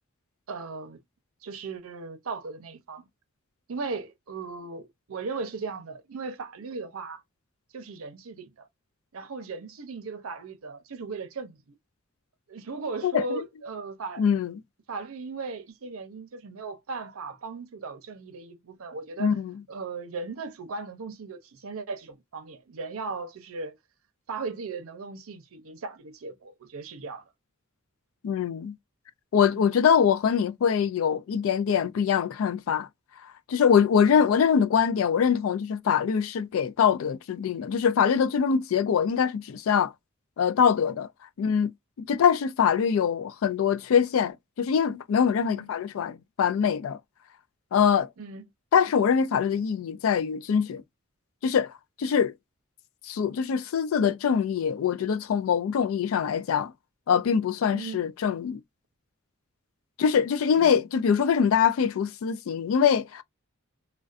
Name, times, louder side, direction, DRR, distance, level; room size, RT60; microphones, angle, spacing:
voice 1, 0.5-1.0 1.4-3.1 3.7-7.2 7.7-8.7 9.1-11.6 12.5-14.3 14.9-19.4 19.7-23.8 24.3-27.2 29.5-29.8 34.0-34.3 42.1-42.2 45.4-45.7 48.2-48.4 57.7-58.0 60.6-60.9, right 4 dB, 85° right, 0.6 m, -37 dB
voice 2, 13.0-13.4 14.2-14.5 19.2-19.5 28.2-28.8 29.3-32.9 33.5-39.9 40.4-41.1 41.4-41.7 42.0-47.0 47.7-48.1 48.7-50.8 51.4-51.7 52.0-52.3 53.1-56.7 57.1-58.6 60.0-63.2, left 7 dB, 75° left, 0.3 m, -23 dB
2.3 x 2.2 x 2.4 m
head